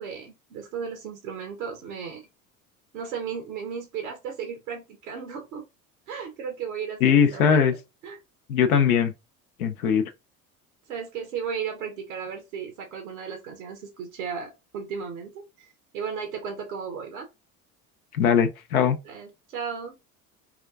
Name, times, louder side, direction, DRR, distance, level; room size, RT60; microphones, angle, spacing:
voice 1, 0.0-2.2 2.9-5.6 6.1-7.6 8.0-8.2 10.9-15.7 15.9-17.3 19.0-20.0, right 6 dB, 80° right, 0.9 m, -35 dB
voice 2, 7.0-7.7 8.5-9.1 9.6-10.0 18.1-19.0, left 7 dB, 85° left, 0.6 m, -20 dB
4.2 x 2.3 x 2.4 m
hypercardioid pair, 70°, 42 cm